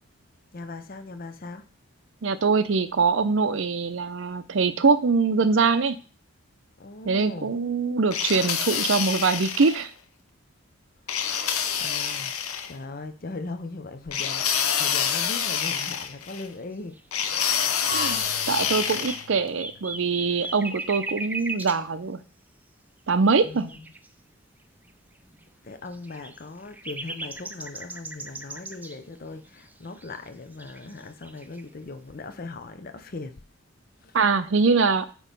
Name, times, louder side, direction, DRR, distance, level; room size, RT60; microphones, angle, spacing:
voice 1, 0.5-1.7 6.8-7.5 11.1-11.4 11.8-12.3 12.7-17.0 20.3-20.5 23.4-23.8 25.6-33.4 34.0-34.2, left 3 dB, 40° left, 0.5 m, -39 dB
voice 2, 2.2-6.0 7.0-9.9 17.9-22.2 23.1-23.7 34.1-35.1, right 4 dB, 60° right, 0.6 m, -23 dB
sound 1, 8.1-9.8 11.1-12.7 14.1-16.5 17.1-19.2, left 8 dB, 85° left, 0.8 m, -27 dB
sound 2, 17.0-17.1 17.3-21.8 23.7-24.1 24.9-25.0 25.3-25.4 25.9-29.0 29.4-30.3 30.5-31.6, right 2 dB, 10° right, 0.3 m, -38 dB
Marimba xylophone / Wood, 17.9-20.7, right 1 dB, 60° left, 1.4 m, -41 dB
8.4 x 3.1 x 5.2 m
head